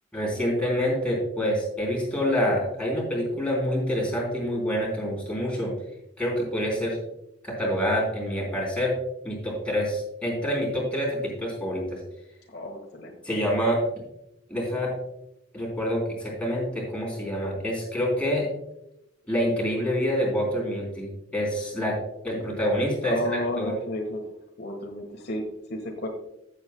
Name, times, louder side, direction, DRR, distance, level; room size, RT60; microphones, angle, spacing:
voice 1, 0.1-5.7 6.2-7.0 7.4-8.9 9.2-12.0 13.2-13.8 14.5-14.9 15.5-18.5 19.3-22.0 22.2-23.7, equal, 5° left, -3 dB, 3.6 m, -27 dB
voice 2, 12.5-13.1 23.0-24.2 24.6-26.1, left 1 dB, 60° left, 2 dB, 1.4 m, -32 dB
15.5 x 7.7 x 2.2 m, 0.83 s
head